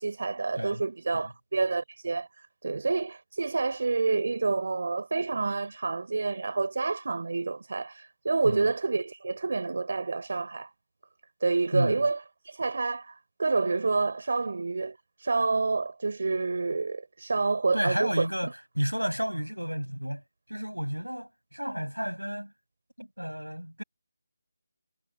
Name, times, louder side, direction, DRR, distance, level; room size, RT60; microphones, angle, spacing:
voice 1, 0.0-10.7 11.4-18.3, right 3 dB, 50° right, 6.7 m, -28 dB
voice 2, 11.7-12.0 17.7-20.2 20.5-22.5 23.0-23.8, equal, 85° right, 7.7 m, -31 dB
figure-of-eight pair, 155°, 0 cm